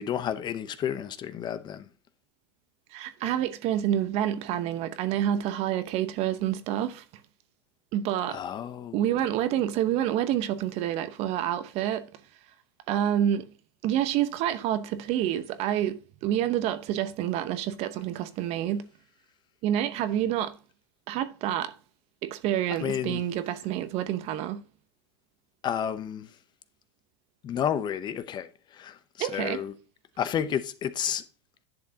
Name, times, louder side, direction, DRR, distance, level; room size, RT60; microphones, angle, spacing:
voice 1, 0.0-1.9 8.3-9.2 22.7-23.2 25.6-26.4 27.4-29.7 30.2-31.2, left 9 dB, 30° left, 0.7 m, -31 dB
voice 2, 2.9-7.0 7.9-8.4 8.9-12.1 12.9-13.5 13.8-18.9 19.6-20.6 21.1-21.7 22.2-24.6 29.2-29.6, right 11 dB, 50° right, 0.9 m, -28 dB
10.5 x 6.5 x 2.8 m
hypercardioid pair, 110°, 14 cm